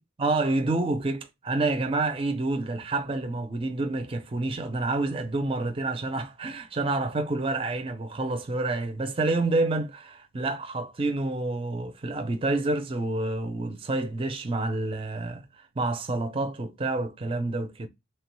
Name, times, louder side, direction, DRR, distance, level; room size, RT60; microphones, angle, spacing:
voice 1, 0.2-17.9, right 2 dB, 25° right, 0.4 m, -28 dB
3.2 x 2.2 x 2.9 m
head